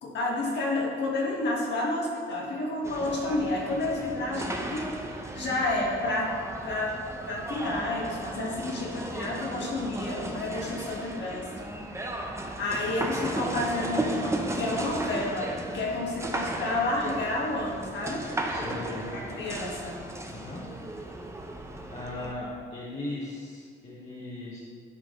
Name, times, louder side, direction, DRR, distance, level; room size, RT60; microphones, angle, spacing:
voice 1, 0.0-6.3 6.6-6.9 7.2-11.5 12.6-18.3 19.1-20.0 20.3-20.5, left 2 dB, 60° left, -3 dB, 1.7 m, -30 dB
sound 1, 2.8-22.3, right 1 dB, 15° right, 0.8 m, -35 dB
voice 2, 18.4-19.1 20.3-20.7 21.8-24.6, left 2 dB, 35° left, -6 dB, 1.3 m, -38 dB
11.0 x 4.8 x 3.8 m, 2.1 s
cardioid pair, 90°, 20 cm